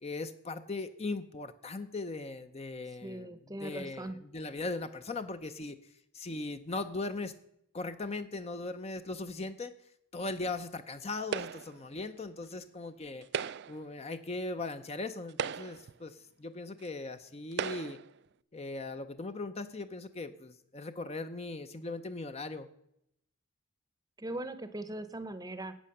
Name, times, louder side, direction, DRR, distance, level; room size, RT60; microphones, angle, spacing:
voice 1, 0.0-3.3 3.6-5.8 6.1-7.3 7.7-9.7 10.1-13.3 13.7-18.0 18.5-22.7, left 3 dB, 30° left, 10 dB, 0.6 m, -39 dB
voice 2, 3.0-4.2 24.2-25.7, right 1 dB, 15° right, 11 dB, 0.8 m, -40 dB
sound 1, 11.3-11.8 13.2-13.9 14.7-14.8 15.3-16.0 16.8-16.9 17.5-18.1, right 7 dB, 50° right, 0.3 m, -36 dB
11.5 x 8.3 x 6.5 m, 0.77 s
head